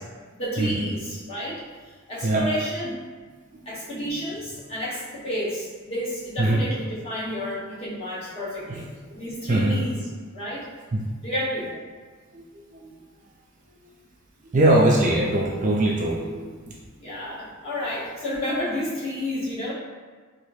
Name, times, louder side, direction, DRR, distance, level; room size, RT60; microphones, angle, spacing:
voice 1, 0.4-1.6 2.1-3.0 3.6-8.8 9.2-10.0 10.3-10.6 11.2-11.7 17.0-19.7, equal, 25° left, -9 dB, 1.0 m, -30 dB
voice 2, 9.5-9.8 10.9-11.0 12.3-12.9 14.5-16.7, right 1 dB, 35° right, -3 dB, 0.3 m, -22 dB
3.1 x 2.5 x 3.1 m, 1.5 s
head